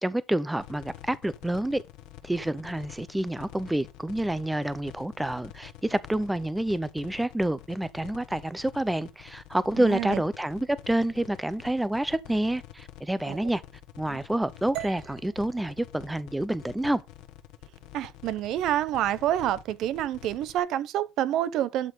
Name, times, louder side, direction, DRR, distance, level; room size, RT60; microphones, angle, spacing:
voice 1, 0.0-1.8 2.2-13.6 14.0-17.0, right 1 dB, 5° right, 0.5 m, -28 dB
sound 1, 0.6-20.6, left 14 dB, 80° left, 1.2 m, -47 dB
voice 2, 9.8-10.2 13.3-13.4 14.1-14.2 17.9-21.9, right 12 dB, 55° right, 0.6 m, -28 dB
sound 2, 14.7-18.9, right 16 dB, 90° right, 1.0 m, -45 dB
12.0 x 4.3 x 5.1 m
cardioid pair, 155°, 0 cm